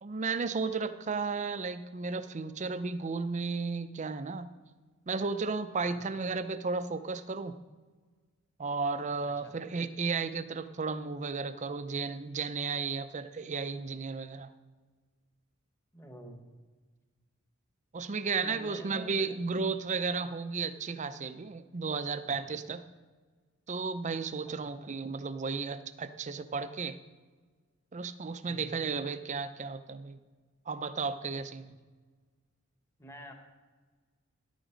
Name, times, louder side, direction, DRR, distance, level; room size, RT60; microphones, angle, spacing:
voice 1, 0.0-4.5 5.1-7.5 8.6-14.5 17.9-22.8 23.7-27.0 27.9-30.2 30.7-31.7, right 4 dB, 35° right, 12 dB, 0.5 m, -34 dB
voice 2, 9.2-9.5 15.9-16.4 18.4-19.2 24.4-24.7 28.4-28.7 33.0-33.3, equal, 15° left, 4 dB, 1.4 m, -48 dB
11.0 x 9.0 x 5.1 m, 1.4 s
head